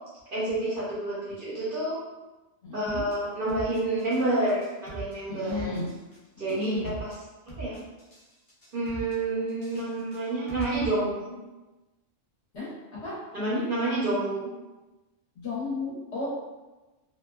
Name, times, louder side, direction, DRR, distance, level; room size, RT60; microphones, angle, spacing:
voice 1, 0.3-2.0 2.7-5.7 6.4-7.1 7.5-7.8 8.7-11.4 13.3-14.5, right 2 dB, 55° right, -8 dB, 0.7 m, -29 dB
voice 2, 2.6-3.0 5.3-5.9 6.5-6.9 12.5-12.7 13.0-13.6 15.3-16.3, left 3 dB, 60° left, -9 dB, 1.3 m, -33 dB
sound 1, 2.9-3.1 3.5-4.2 4.5-5.1 5.5-6.2 6.5-7.1 7.5-8.2 8.5-9.1 9.5-10.9, right 4 dB, 40° left, 0.5 m, -41 dB
2.8 x 2.2 x 2.3 m, 1.1 s
omnidirectional pair, 1.3 m